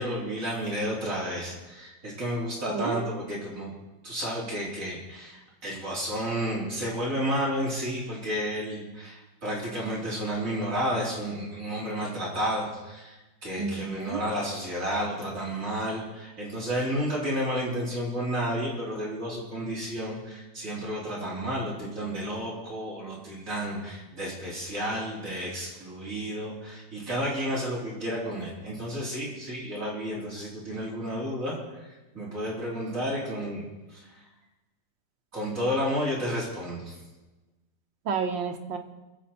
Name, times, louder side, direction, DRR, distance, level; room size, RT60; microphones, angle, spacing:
voice 1, 0.0-3.7 4.0-31.9 32.1-33.6 33.9-34.2 35.3-37.0, equal, 45° right, -6 dB, 4.1 m, -31 dB
voice 2, 2.7-3.1 13.6-14.2 38.1-38.8, right 5 dB, 90° right, 5 dB, 1.9 m, -30 dB
23.0 x 7.9 x 4.4 m, 1.1 s
omnidirectional pair, 2.0 m